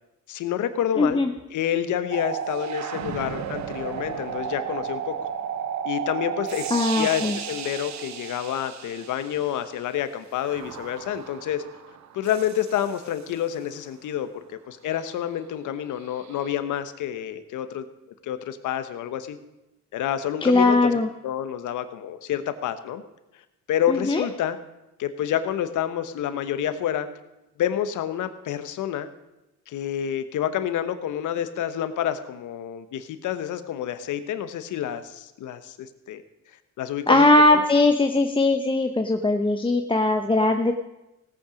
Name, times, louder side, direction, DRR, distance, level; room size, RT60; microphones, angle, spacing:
voice 1, 0.3-1.2 1.5-5.1 5.8-11.6 12.1-17.9 18.2-19.4 19.9-23.0 23.7-24.6 25.0-27.1 27.6-29.1 29.7-36.2 36.8-37.6, left 10 dB, 80° left, 11 dB, 1.1 m, -28 dB
voice 2, 1.0-1.3 6.7-7.4 20.4-21.1 23.9-24.2 37.1-40.7, left 2 dB, 15° left, 5 dB, 0.8 m, -20 dB
sound 1, 2.1-9.7 10.4-13.4 16.1-16.5, right 8 dB, 65° right, 1.0 m, -34 dB
17.0 x 8.6 x 5.1 m, 0.95 s
cardioid pair, 90°, 30 cm